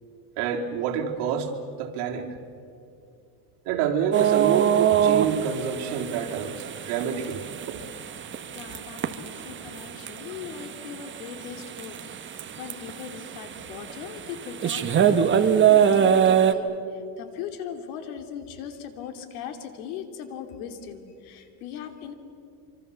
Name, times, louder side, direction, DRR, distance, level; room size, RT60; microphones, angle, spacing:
voice 1, 0.4-1.5 1.8-2.3 3.7-7.8, right 8 dB, 65° right, 1 dB, 3.5 m, -28 dB
sound 1, 4.1-16.5, right 8 dB, 25° right, 1.3 m, -24 dB
voice 2, 8.5-12.0 12.2-22.1, left 8 dB, 85° left, 7 dB, 3.1 m, -39 dB
26.0 x 25.5 x 7.0 m, 2.6 s
cardioid pair, 140°, 43 cm